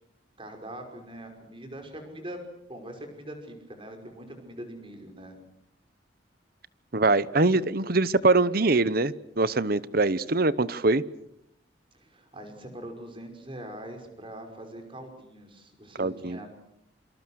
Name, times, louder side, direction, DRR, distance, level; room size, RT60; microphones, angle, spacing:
voice 1, 0.4-2.4 2.7-5.4 11.9-16.5, right 1 dB, 30° right, 5 dB, 5.6 m, -42 dB
voice 2, 6.9-11.0 16.0-16.4, right 3 dB, 55° right, 17 dB, 1.0 m, -23 dB
27.0 x 26.5 x 6.5 m, 0.75 s
head